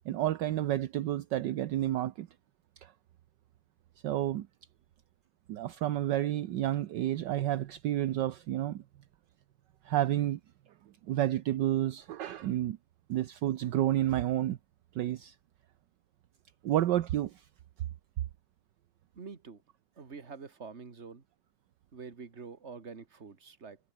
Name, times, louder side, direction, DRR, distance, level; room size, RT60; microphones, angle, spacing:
voice 1, 0.0-2.3 2.8-2.9 4.0-4.5 5.5-8.8 9.8-10.4 11.1-12.8 13.1-14.6 14.9-15.3 16.6-17.4, right 13 dB, 70° right, 1.4 m, -30 dB
voice 2, 19.2-19.6 20.0-21.2 21.9-23.8, right 5 dB, 35° right, 2.2 m, -46 dB
omnidirectional pair, 2.1 m